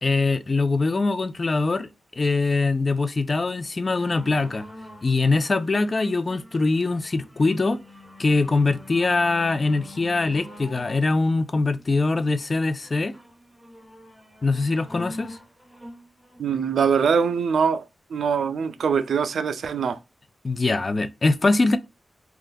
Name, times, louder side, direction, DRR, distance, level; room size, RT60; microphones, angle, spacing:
voice 1, 0.0-1.9 2.2-4.6 5.0-7.8 8.2-13.1 14.4-15.4 20.4-21.8, left 3 dB, 35° left, 0.3 m, -22 dB
sound 1, 3.9-17.5 18.2-18.3, left 1 dB, ahead, 1.2 m, -45 dB
voice 2, 16.4-17.8 18.1-20.0, right 6 dB, 85° right, 0.3 m, -23 dB
3.5 x 2.3 x 2.5 m
wide cardioid pair, 130°, 0 cm